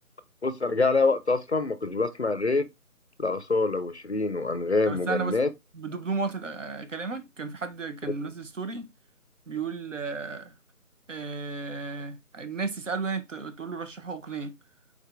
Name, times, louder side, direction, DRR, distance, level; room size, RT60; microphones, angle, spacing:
voice 1, 0.4-2.7 3.2-5.5, left 3 dB, 50° left, 0.5 m, -25 dB
voice 2, 4.9-5.4 5.7-8.9 9.5-10.5 11.1-14.6, right 4 dB, 55° right, 0.8 m, -33 dB
4.9 x 4.0 x 2.3 m
figure-of-eight pair, 160°, 44 cm